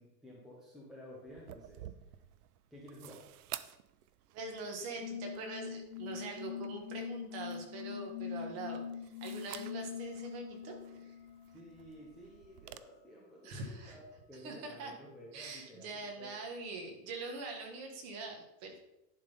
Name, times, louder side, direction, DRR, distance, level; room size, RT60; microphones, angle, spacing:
voice 1, 0.0-2.1 2.7-3.2 11.5-16.3, equal, ahead, -5 dB, 0.7 m, -53 dB
sound 1, 1.3-12.8, right 13 dB, 65° right, 0.6 m, -53 dB
voice 2, 4.3-11.2 13.4-14.0 14.3-14.9 15.3-18.8, right 3 dB, 30° right, 2 dB, 1.5 m, -43 dB
sound 2, 5.0-12.0, left 8 dB, 65° left, 1.2 m, -43 dB
11.0 x 3.8 x 5.4 m, 0.90 s
supercardioid pair, 165°, 49 cm